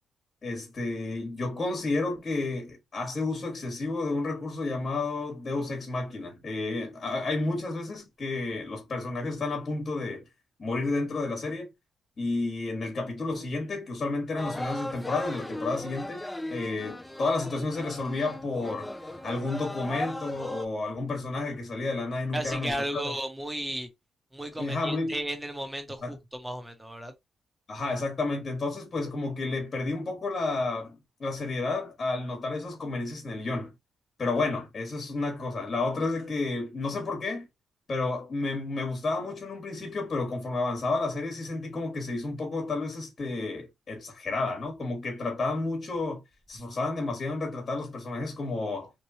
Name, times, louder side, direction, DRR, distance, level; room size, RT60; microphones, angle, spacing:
voice 1, 0.4-10.3 10.6-11.7 12.2-16.2 16.5-23.0 24.6-25.2 26.0-26.1 27.7-33.7 34.2-37.5 37.9-46.2 46.5-48.9, left 3 dB, 40° left, 1.3 m, -31 dB
sound 1, 14.4-20.7, left 1 dB, 10° left, 0.4 m, -37 dB
voice 2, 22.3-23.9 24.3-27.1, right 1 dB, 10° right, 0.9 m, -34 dB
3.1 x 2.2 x 2.7 m
cardioid pair, 90°, 0 cm